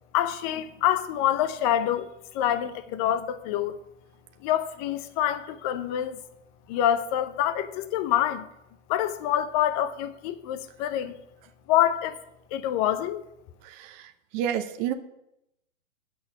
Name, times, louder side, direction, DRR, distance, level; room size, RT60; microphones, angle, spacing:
voice 1, 0.1-2.1 2.3-3.8 4.4-6.2 6.7-8.5 8.9-11.1 11.7-12.2 12.5-13.2, left 11 dB, 30° left, 0.7 m, -26 dB
voice 2, 13.6-14.9, right 10 dB, 30° right, 0.7 m, -30 dB
8.6 x 6.2 x 7.9 m
hypercardioid pair, 130°, 37 cm